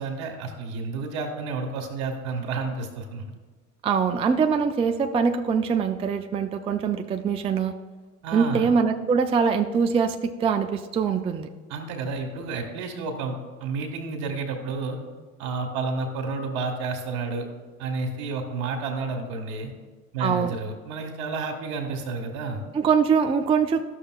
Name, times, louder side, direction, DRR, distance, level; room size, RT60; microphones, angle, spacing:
voice 1, 0.0-3.2 8.2-8.7 11.7-13.3 13.6-15.0 15.4-17.5 17.8-19.7 20.1-22.6, right 4 dB, 70° right, 5 dB, 1.6 m, -30 dB
voice 2, 3.8-7.7 8.3-11.5 20.2-20.6 22.7-23.8, right 6 dB, 15° right, 7 dB, 0.4 m, -23 dB
12.5 x 6.5 x 2.3 m, 1.4 s
hypercardioid pair, 70°, 41 cm